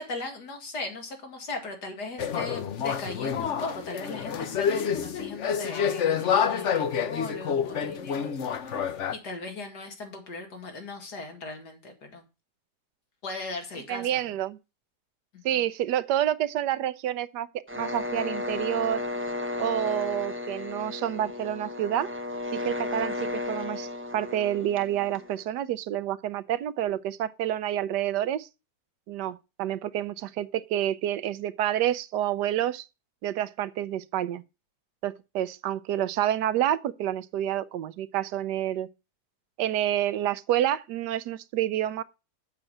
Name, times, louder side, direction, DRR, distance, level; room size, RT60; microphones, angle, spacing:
voice 1, 0.0-8.3 8.6-12.2 13.2-14.2 15.3-15.4, left 3 dB, 75° left, 2.7 m, -38 dB
sound 1, 2.2-9.1, left 7 dB, 50° left, 1.0 m, -28 dB
voice 2, 13.9-14.6 15.4-17.5 17.8-19.0 19.6-22.1 22.6-23.9 24.1-28.5 29.1-32.8 33.2-34.4 35.0-38.9 39.6-42.0, right 12 dB, 80° right, 1.3 m, -28 dB
sound 2, 17.7-25.4, left 2 dB, 10° right, 0.6 m, -34 dB
7.5 x 6.0 x 7.7 m
omnidirectional pair, 1.8 m